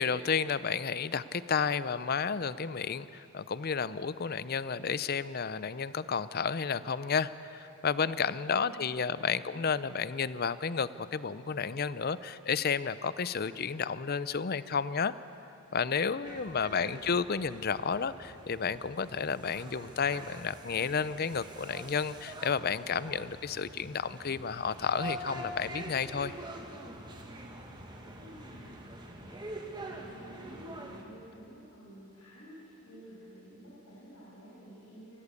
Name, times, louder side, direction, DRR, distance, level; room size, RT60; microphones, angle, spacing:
voice 1, 0.0-15.1 15.7-26.3, left 6 dB, 45° left, 16 dB, 0.5 m, -32 dB
voice 2, 8.3-9.6 16.2-16.4 16.6-17.1 27.6-35.2, equal, 85° left, -8 dB, 6.2 m, -52 dB
sound 1, 16.2-31.0, right 1 dB, 20° right, 1.8 m, -45 dB
24.5 x 17.0 x 8.4 m, 2.9 s
head